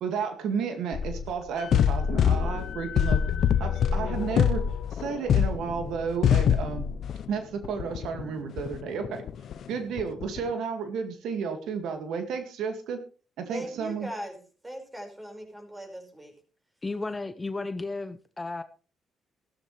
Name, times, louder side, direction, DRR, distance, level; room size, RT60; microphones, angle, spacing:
voice 1, 0.0-3.2 3.6-4.6 4.9-6.8 7.3-9.2 9.7-13.0 13.4-14.1, right 6 dB, 80° right, 7 dB, 2.1 m, -32 dB
sound 1, 0.9-1.3 1.7-7.3 7.6-10.5, left 8 dB, 65° left, 0.8 m, -25 dB
voice 2, 13.5-14.4 14.6-16.3, equal, 15° right, 3 dB, 5.0 m, -39 dB
voice 3, 16.8-18.6, left 3 dB, 20° left, 11 dB, 0.8 m, -33 dB
15.0 x 12.5 x 3.3 m, 0.36 s
cardioid pair, 90°, 0 cm